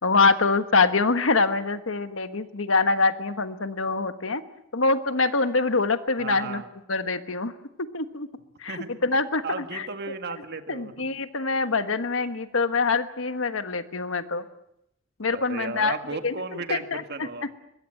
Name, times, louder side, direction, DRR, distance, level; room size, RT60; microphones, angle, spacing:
voice 1, 0.0-4.4 4.7-6.6 6.9-7.5 7.8-8.3 8.6-9.9 10.7-14.4 15.2-15.9 16.2-16.4 16.7-17.0, left 3 dB, 85° left, 10 dB, 1.4 m, -24 dB
voice 2, 6.2-6.7 8.7-9.0 9.4-11.1 15.3-17.6, right 4 dB, 55° right, 7 dB, 1.9 m, -35 dB
22.5 x 21.0 x 7.8 m, 0.81 s
head